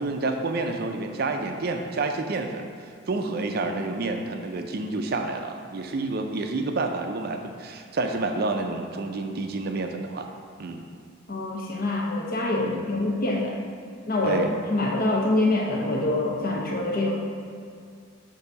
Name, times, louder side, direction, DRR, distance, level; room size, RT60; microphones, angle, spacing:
voice 1, 0.0-2.6 3.1-10.3 10.6-10.8 12.6-12.9 14.2-14.5, right 3 dB, 50° right, 5 dB, 0.4 m, -29 dB
voice 2, 11.3-13.6 14.1-14.4 14.7-17.2, left 2 dB, 45° left, -1 dB, 0.8 m, -25 dB
6.6 x 2.7 x 5.6 m, 2.3 s
head